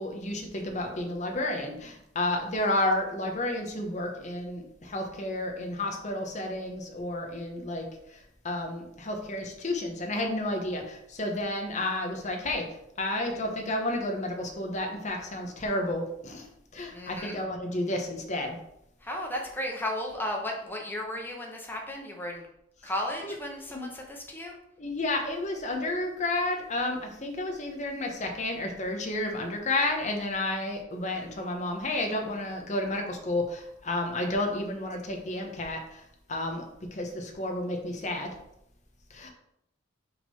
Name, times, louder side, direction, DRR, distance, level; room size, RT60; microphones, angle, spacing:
voice 1, 0.0-12.6 13.0-18.6 23.2-23.4 23.7-23.9 24.8-36.0 36.3-38.3 39.1-39.3, left 1 dB, 35° left, 3 dB, 1.0 m, -31 dB
voice 2, 16.9-17.4 19.0-22.5 22.8-24.6, left 1 dB, 10° left, 0 dB, 1.0 m, -34 dB
5.9 x 3.7 x 5.4 m, 0.77 s
head